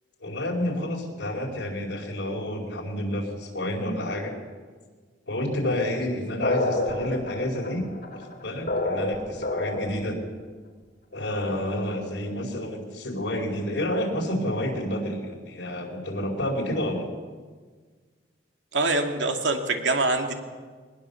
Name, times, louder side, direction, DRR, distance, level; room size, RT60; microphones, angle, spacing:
voice 1, 0.2-4.3 5.3-7.9 8.1-10.2 11.1-17.1, left 1 dB, 75° left, -1 dB, 4.8 m, -29 dB
sound 1, 6.4-10.1, left 2 dB, 50° left, 3.3 m, -28 dB
voice 2, 18.7-20.3, right 2 dB, 85° right, 4 dB, 2.4 m, -24 dB
22.5 x 20.0 x 7.1 m, 1.5 s
head